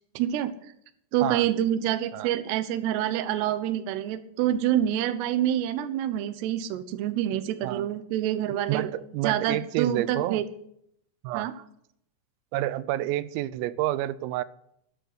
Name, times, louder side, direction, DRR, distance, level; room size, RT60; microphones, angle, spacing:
voice 1, 0.2-0.5 1.1-8.9 9.2-10.5 11.3-11.5, right 11 dB, 70° right, 10 dB, 2.7 m, -27 dB
voice 2, 8.7-10.4 11.2-11.5 12.5-14.4, right 14 dB, 90° right, 16 dB, 3.4 m, -29 dB
12.0 x 10.5 x 8.2 m, 0.73 s
omnidirectional pair, 5.8 m